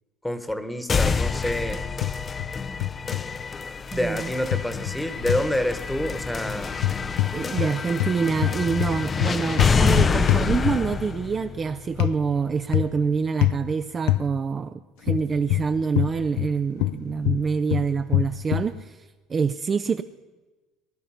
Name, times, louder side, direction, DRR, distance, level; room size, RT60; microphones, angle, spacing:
voice 1, 0.2-1.9 3.9-6.8, left 1 dB, 5° left, 10 dB, 1.2 m, -28 dB
sound 1, 0.9-12.8, left 5 dB, 25° left, 0.5 m, -27 dB
sound 2, 2.0-2.5 2.8-3.2 4.5-5.5 6.7-7.7 8.0-11.0 12.0-12.2 12.7-13.0 13.4-13.6 14.1-14.3 15.1-16.5 16.8-18.7, left 16 dB, 85° left, 0.5 m, -25 dB
voice 2, 3.9-4.3 7.3-20.0, right 5 dB, 25° right, 9 dB, 0.4 m, -26 dB
19.0 x 11.0 x 5.7 m, 1.2 s
cardioid pair, 135°, 0 cm